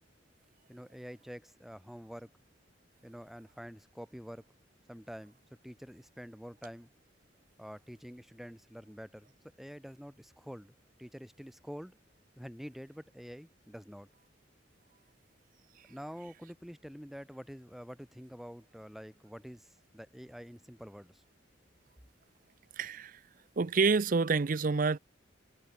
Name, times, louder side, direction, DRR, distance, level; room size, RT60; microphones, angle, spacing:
voice 1, 0.7-2.3 3.0-4.4 4.9-5.4 5.6-6.9 7.6-9.3 9.6-12.0 12.4-14.1 15.9-21.2, equal, ahead, 1.9 m, -47 dB
voice 2, 22.8-23.2 23.6-25.0, right 4 dB, 45° right, 0.5 m, -28 dB
head